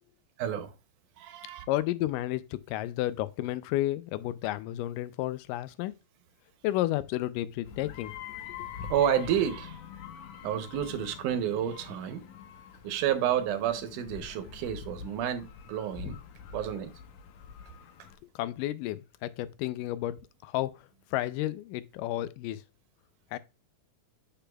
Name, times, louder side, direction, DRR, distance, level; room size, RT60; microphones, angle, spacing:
voice 1, 0.4-0.7 1.2-1.7 8.9-9.8 10.4-12.3 12.8-16.2 16.5-16.9, right 10 dB, 75° right, 2.3 m, -30 dB
voice 2, 1.7-5.9 6.6-8.1 18.4-20.7 21.1-22.6 23.3-23.4, left 15 dB, 90° left, 2.2 m, -31 dB
sound 1, 7.6-18.2, left 8 dB, 75° left, 2.3 m, -45 dB
7.8 x 6.7 x 2.3 m
omnidirectional pair, 3.7 m